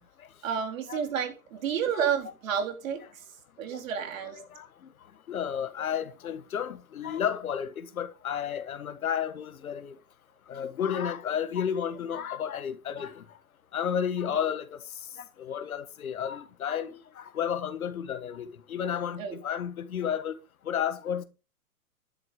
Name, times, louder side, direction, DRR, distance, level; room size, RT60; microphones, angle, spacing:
voice 1, 0.4-3.3 3.6-4.4 14.3-14.4 19.2-19.4, right 7 dB, 65° right, 3.8 m, -31 dB
voice 2, 4.3-4.7 5.3-10.0 10.5-13.2 13.7-14.8 15.4-20.4 20.6-21.2, left 8 dB, 75° left, 1.6 m, -32 dB
11.5 x 7.8 x 5.1 m
hypercardioid pair, 125°, 43 cm